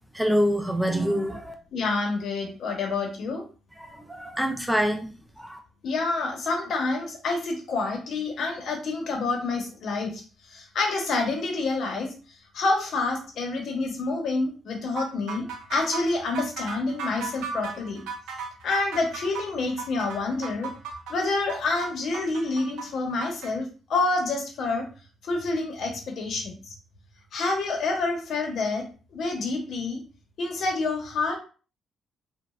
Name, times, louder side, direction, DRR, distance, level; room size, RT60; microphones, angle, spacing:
voice 1, 0.1-1.5 3.8-5.1 5.4-5.6, equal, 5° right, 3 dB, 0.5 m, -26 dB
voice 2, 1.7-3.4 5.8-10.2 10.5-12.1 12.5-18.0 18.6-20.7 21.1-24.8 25.2-26.5 27.3-28.8 29.1-30.0 30.4-31.4, left 3 dB, 65° left, 1 dB, 0.9 m, -28 dB
sound 1, 15.0-23.5, right 5 dB, 90° right, 0.5 m, -36 dB
3.1 x 2.3 x 2.4 m, 0.37 s
cardioid pair, 90°, 0 cm